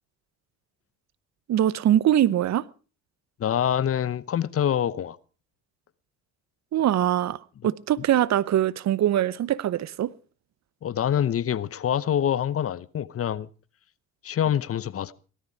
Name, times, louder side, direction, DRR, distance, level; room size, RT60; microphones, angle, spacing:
voice 1, 1.5-2.6 6.7-7.4 7.6-10.1, right 11 dB, 50° right, 0.8 m, -22 dB
voice 2, 3.4-5.2 7.6-7.7 10.8-13.5 14.2-15.1, left 9 dB, 40° left, 0.8 m, -25 dB
18.0 x 13.0 x 4.8 m
hypercardioid pair, 60°, 35 cm